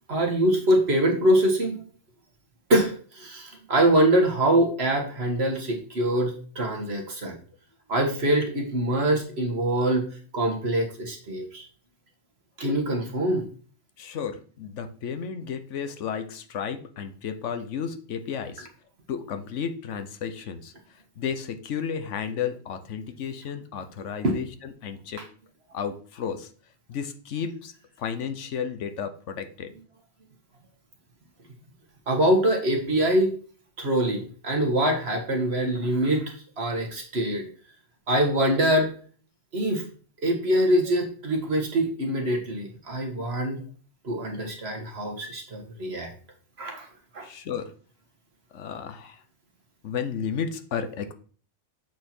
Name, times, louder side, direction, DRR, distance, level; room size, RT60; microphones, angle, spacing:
voice 1, 0.1-1.8 2.7-7.4 7.9-10.1 10.3-11.6 12.6-13.4 24.2-24.4 32.1-33.3 33.8-37.5 38.1-38.9 39.5-39.8 40.2-43.6 44.0-46.1 46.6-46.9 47.1-47.3, right 1 dB, 60° right, 2 dB, 1.8 m, -24 dB
voice 2, 14.0-18.7 19.1-20.7 21.2-25.2 25.7-26.5 26.9-27.7 28.0-29.7 47.2-47.7 48.5-49.2 49.8-51.1, left 7 dB, 90° left, 9 dB, 1.2 m, -33 dB
8.1 x 4.5 x 4.4 m, 0.43 s
omnidirectional pair, 1.2 m